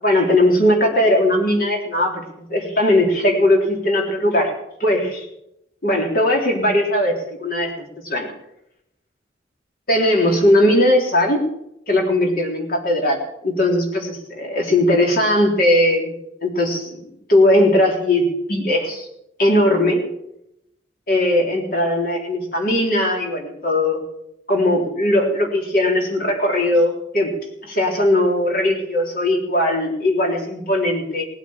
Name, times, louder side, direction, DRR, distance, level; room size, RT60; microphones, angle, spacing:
voice 1, 0.0-4.5 4.8-5.3 5.8-7.7 8.0-8.3 9.9-11.4 11.9-16.1 16.4-17.0 17.3-19.1 19.4-20.0 21.1-24.0 24.5-27.3 27.6-31.2, left 1 dB, 50° left, 1 dB, 3.7 m, -19 dB
19.0 x 8.2 x 7.3 m, 0.80 s
head